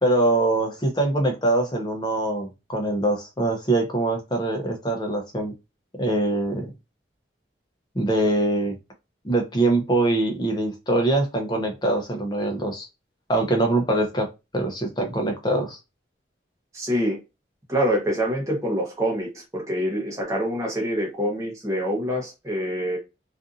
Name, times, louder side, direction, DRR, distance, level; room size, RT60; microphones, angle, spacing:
voice 1, 0.0-5.5 6.0-6.7 7.9-8.8 9.2-12.9 13.3-14.3 14.5-15.8, right 2 dB, 25° left, 0.6 m, -23 dB
voice 2, 16.7-17.2 17.7-23.0, equal, 15° right, 0.8 m, -25 dB
2.6 x 2.5 x 2.4 m
head